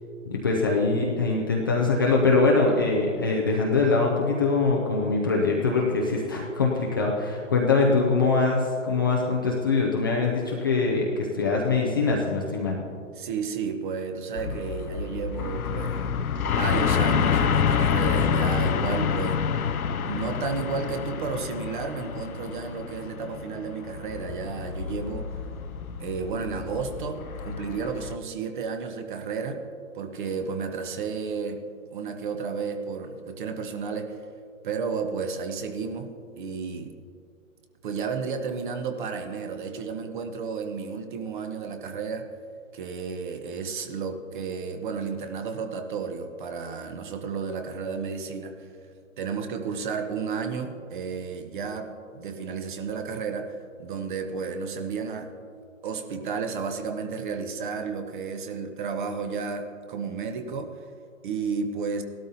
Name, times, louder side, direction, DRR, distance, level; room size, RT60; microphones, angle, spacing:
voice 1, 0.3-12.8, left 3 dB, 15° left, -3 dB, 0.4 m, -23 dB
voice 2, 13.2-16.0 16.6-19.4 20.0-25.3 26.0-29.7 29.9-31.6 31.9-34.2 34.6-36.1 36.4-37.0 37.8-42.3 42.7-48.7 49.2-55.3 55.8-60.7 61.2-62.0, right 5 dB, 35° right, 7 dB, 1.0 m, -32 dB
sound 1, 14.4-28.2, left 7 dB, 85° left, 0.7 m, -28 dB
17.5 x 12.5 x 2.7 m, 2.3 s
hypercardioid pair, 140°, 42 cm